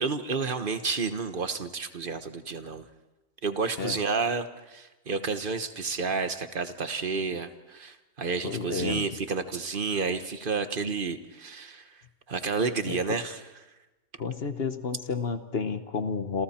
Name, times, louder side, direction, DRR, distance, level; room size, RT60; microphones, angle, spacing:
voice 1, 0.0-2.8 3.4-11.8 12.3-13.4, right 4 dB, 35° right, 9 dB, 1.3 m, -30 dB
voice 2, 8.4-9.0 12.9-13.0 14.2-16.4, left 5 dB, 45° left, 10 dB, 1.1 m, -31 dB
28.0 x 28.0 x 4.4 m, 1.1 s
omnidirectional pair, 1.7 m